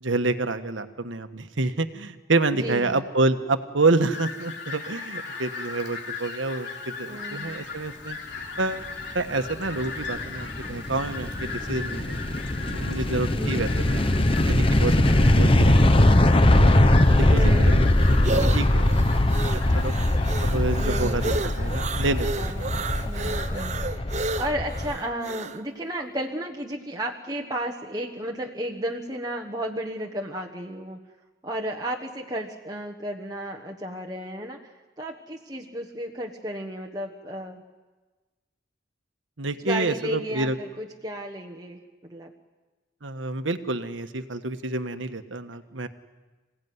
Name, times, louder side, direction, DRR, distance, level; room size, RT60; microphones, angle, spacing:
voice 1, 0.0-8.2 8.6-8.9 9.1-12.1 12.7-14.0 14.5-16.2 16.5-16.7 17.1-17.9 18.2-19.9 20.4-22.5 22.8-22.9 39.4-40.6 43.0-45.9, right 2 dB, 80° right, 9 dB, 1.4 m, -28 dB
voice 2, 2.5-3.0 7.1-7.6 13.3-14.2 17.3-17.8 20.8-21.4 22.4-24.1 24.4-31.0 31.4-37.6 39.6-42.3, right 1 dB, 20° right, 0 dB, 1.4 m, -33 dB
Fowl, 4.1-23.6, left 4 dB, 60° left, 3.8 m, -39 dB
sound 1, 9.4-25.0, left 1 dB, 30° left, 1.0 m, -21 dB
sound 2, 17.3-25.6, right 3 dB, 40° right, 0.9 m, -32 dB
27.0 x 17.0 x 9.6 m, 1.3 s
head